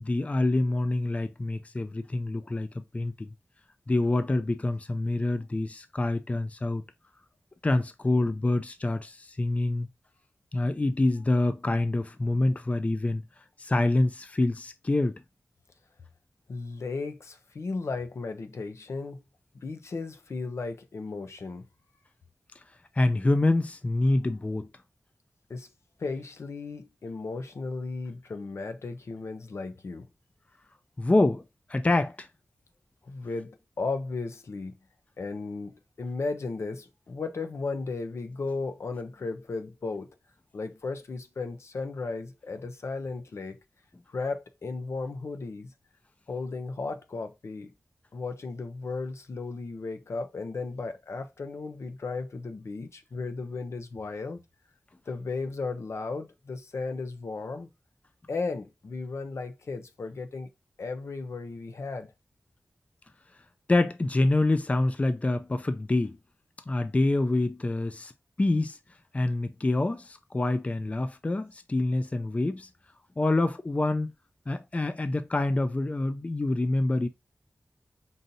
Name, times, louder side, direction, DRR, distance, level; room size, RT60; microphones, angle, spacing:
voice 1, 0.0-3.3 3.9-6.8 7.6-9.9 10.5-13.2 13.6-15.2 23.0-24.7 31.0-31.4 31.7-32.3 63.7-66.2 66.7-68.1 68.4-68.8 69.1-72.7 73.2-74.1 74.5-77.1, left 2 dB, 30° left, 0.4 m, -26 dB
voice 2, 16.5-19.2 19.6-21.6 25.5-25.7 26.0-30.1 33.0-34.7 35.2-40.1 40.5-43.6 44.1-45.7 46.3-47.7 48.1-54.4 55.1-57.7 58.3-60.5 60.8-62.1, left 3 dB, 75° left, 0.6 m, -35 dB
5.4 x 2.7 x 2.5 m
wide cardioid pair, 70°, 5 cm